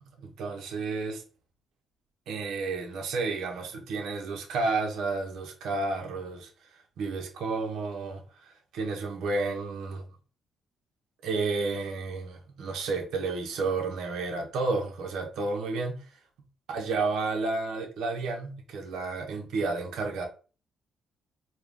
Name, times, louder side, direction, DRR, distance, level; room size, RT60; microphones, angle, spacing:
voice 1, 0.0-1.2 2.3-6.5 7.0-10.0 11.2-16.0 16.7-20.3, right 3 dB, 80° right, 1.2 m, -31 dB
4.5 x 2.5 x 3.5 m
cardioid pair, 90°, 0 cm